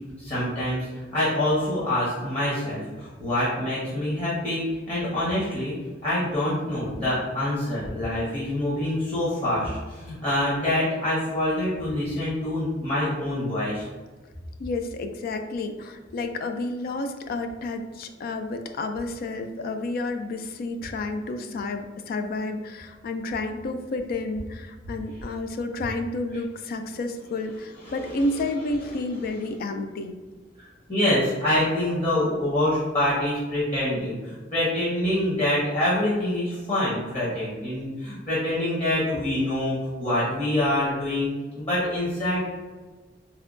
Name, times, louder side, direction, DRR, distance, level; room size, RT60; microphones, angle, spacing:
voice 1, 0.2-5.8 6.0-13.9 27.8-28.0 30.9-41.3 41.5-42.4, left 1 dB, 35° left, -9 dB, 1.0 m, -25 dB
voice 2, 14.6-30.2, left 2 dB, 50° left, 7 dB, 0.3 m, -30 dB
4.3 x 2.2 x 2.4 m, 1.3 s
head